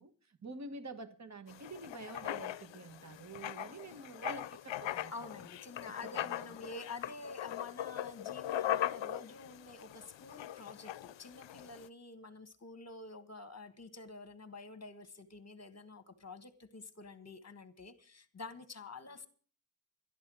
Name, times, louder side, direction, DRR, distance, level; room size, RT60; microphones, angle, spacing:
voice 1, 0.0-5.3 5.9-6.4, right 3 dB, 40° right, 10 dB, 1.4 m, -48 dB
Writing, 1.5-11.9, left 12 dB, 85° left, 0.5 m, -40 dB
voice 2, 5.1-19.3, left 3 dB, 35° left, 11 dB, 1.5 m, -49 dB
12.0 x 11.0 x 6.3 m, 0.44 s
wide cardioid pair, 85°, 43 cm